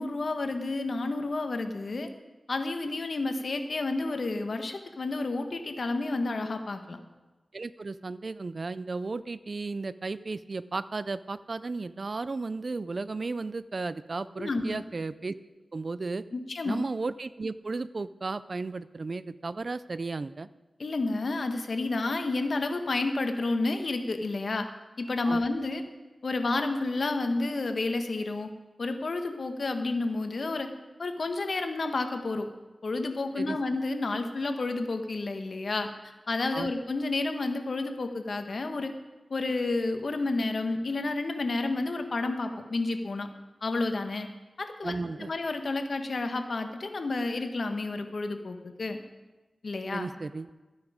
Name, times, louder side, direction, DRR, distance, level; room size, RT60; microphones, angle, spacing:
voice 1, 0.0-2.1 2.5-7.0 14.4-14.8 16.3-16.8 20.8-24.7 25.0-25.8 26.2-28.5 28.8-30.7 31.0-32.5 32.8-35.9 36.3-38.9 39.3-43.3 43.6-44.3 44.6-49.0 49.6-50.1, left 3 dB, 65° left, 6 dB, 1.4 m, -30 dB
voice 2, 7.5-15.3 15.7-16.2 16.7-20.5 25.2-25.4 33.4-33.6 36.5-36.7 44.8-45.3 49.9-50.5, right 3 dB, 55° right, 16 dB, 0.5 m, -34 dB
14.5 x 9.5 x 5.0 m, 1.2 s
cardioid pair, 45°, 0 cm